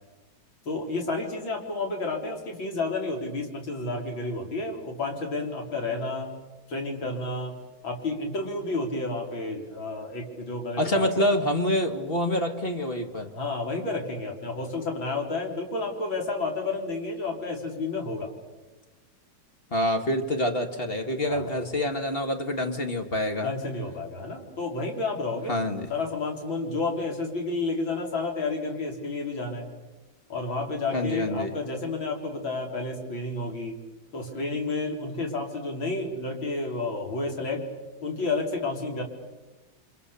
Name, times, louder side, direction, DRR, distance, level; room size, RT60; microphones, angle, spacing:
voice 1, 0.7-6.4 6.7-7.5 7.8-11.2 13.3-18.3 21.3-21.5 23.4-25.5 25.9-29.7 30.3-33.8 34.1-37.6 38.0-39.0, left 3 dB, 70° left, 1 dB, 4.5 m, -31 dB
voice 2, 10.8-13.3 19.7-23.5 25.5-25.9 30.9-31.5, left 1 dB, 30° left, 5 dB, 2.0 m, -26 dB
30.0 x 25.5 x 7.0 m, 1.2 s
omnidirectional pair, 2.3 m